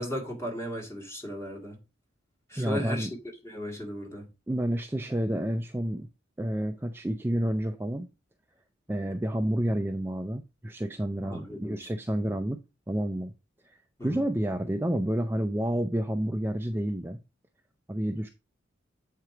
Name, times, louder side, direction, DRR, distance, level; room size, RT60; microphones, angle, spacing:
voice 1, 0.0-1.8 2.5-3.1 3.4-4.3 11.2-11.9 14.0-14.2, equal, 15° left, 2.1 m, -36 dB
voice 2, 2.6-3.1 4.5-6.1 6.4-8.1 8.9-12.6 12.9-13.3 13.6-17.2 17.9-18.3, right 1 dB, 10° right, 0.4 m, -29 dB
7.8 x 4.6 x 4.8 m
head